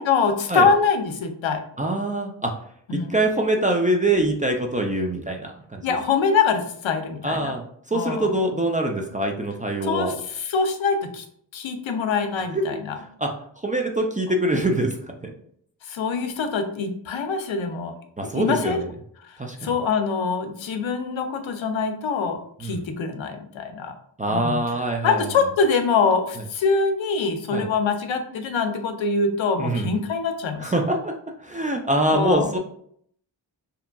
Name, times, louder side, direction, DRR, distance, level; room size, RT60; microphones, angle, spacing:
voice 1, 0.0-1.6 2.9-3.1 5.8-7.6 7.9-8.3 9.8-11.2 11.5-13.0 15.9-17.9 18.2-18.8 19.6-23.9 24.3-24.6 25.0-30.8 32.1-32.5, left 5 dB, 75° left, 6 dB, 0.6 m, -24 dB
voice 2, 1.8-2.5 2.9-6.0 7.2-10.1 12.5-12.6 13.2-13.3 13.6-14.9 15.2-15.3 18.2-18.9 19.4-19.7 22.6-22.9 24.2-25.3 27.5-27.7 29.6-30.0 30.6-31.1 31.4-32.6, right 1 dB, 20° right, 2 dB, 0.3 m, -24 dB
2.8 x 2.4 x 2.2 m, 0.64 s
cardioid pair, 50°, 47 cm